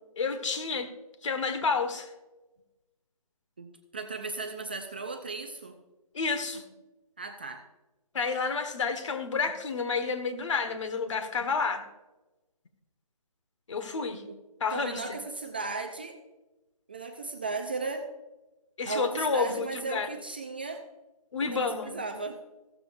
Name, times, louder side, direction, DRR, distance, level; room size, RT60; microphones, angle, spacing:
voice 1, 0.2-0.9 1.2-2.1 6.1-6.6 8.1-11.9 13.7-14.2 14.6-15.2 18.8-20.1 21.3-22.0, left 4 dB, 55° left, 7 dB, 1.6 m, -30 dB
voice 2, 3.6-5.7 7.2-7.6 14.3-14.4 14.7-16.2 16.9-18.1 18.9-20.8 21.4-22.4, right 3 dB, 15° right, 5 dB, 0.4 m, -36 dB
15.5 x 13.5 x 2.6 m, 1.1 s
hypercardioid pair, 165°, 19 cm